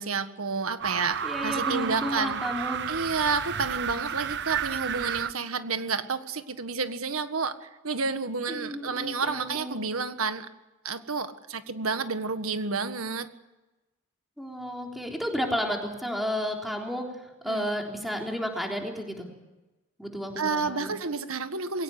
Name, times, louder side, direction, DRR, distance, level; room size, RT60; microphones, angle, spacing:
voice 1, 0.0-2.4 2.9-10.5 10.8-13.3 17.5-17.7 20.4-21.8, right 4 dB, 80° right, 10 dB, 1.7 m, -30 dB
sound 1, 0.8-5.3, right 8 dB, 55° right, 0.9 m, -31 dB
voice 2, 1.2-2.8 8.5-9.8 14.4-19.3 20.0-21.0, equal, ahead, 1 dB, 3.7 m, -32 dB
21.5 x 17.5 x 9.9 m, 1.1 s
head